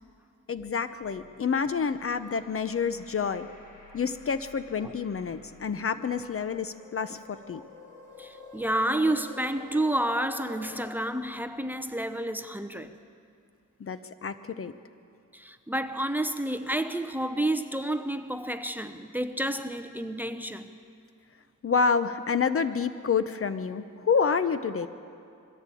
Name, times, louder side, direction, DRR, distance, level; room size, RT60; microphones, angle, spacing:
voice 1, 0.5-3.5 3.9-7.6 13.8-14.7 21.6-24.9, left 5 dB, 45° left, 0.8 m, -28 dB
sound 1, 1.0-10.9, left 4 dB, 80° left, 4.9 m, -50 dB
voice 2, 8.2-12.9 15.3-20.8, right 1 dB, 5° right, 0.8 m, -30 dB
22.0 x 15.5 x 8.4 m
cardioid pair, 95°, 32 cm